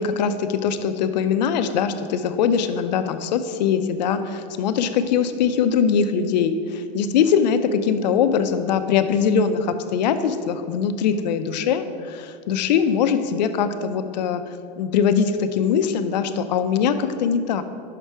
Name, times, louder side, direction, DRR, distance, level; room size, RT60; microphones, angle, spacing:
voice 1, 0.0-17.6, left 7 dB, 90° left, 10 dB, 0.5 m, -22 dB
5.8 x 5.5 x 4.6 m, 2.3 s
supercardioid pair, 125°, 21 cm